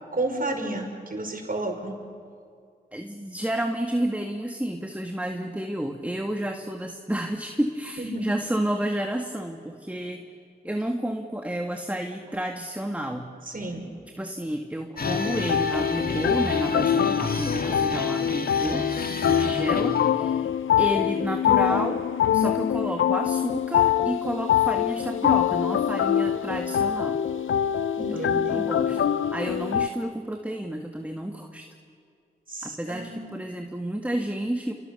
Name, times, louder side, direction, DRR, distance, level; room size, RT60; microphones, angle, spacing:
voice 1, 0.1-2.0 8.0-8.3 13.5-13.8 28.0-28.7 32.5-33.3, right 2 dB, 45° right, 3 dB, 5.6 m, -31 dB
voice 2, 2.9-10.3 10.6-13.3 14.2-20.5 20.8-22.0 22.3-27.2 28.1-31.7 32.6-34.7, right 1 dB, 5° right, 4 dB, 2.0 m, -31 dB
sound 1, 15.0-29.9, left 9 dB, 80° left, 0.6 m, -24 dB
sound 2, 15.0-20.1, left 3 dB, 50° left, 2.1 m, -32 dB
28.0 x 26.0 x 6.9 m, 2.3 s
cardioid pair, 40°, 20 cm